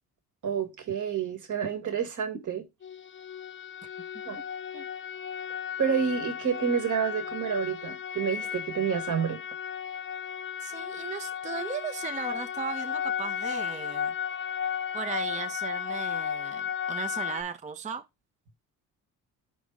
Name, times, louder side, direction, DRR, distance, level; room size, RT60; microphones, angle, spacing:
voice 1, 0.4-2.6 4.2-4.4 5.8-9.4, right 7 dB, 55° right, 1.7 m, -29 dB
sound 1, 2.8-17.4, left 8 dB, 35° left, 0.6 m, -34 dB
voice 2, 10.6-14.1 14.9-18.1, right 6 dB, 20° right, 0.5 m, -37 dB
5.2 x 3.9 x 4.7 m
cardioid pair, 90°, 37 cm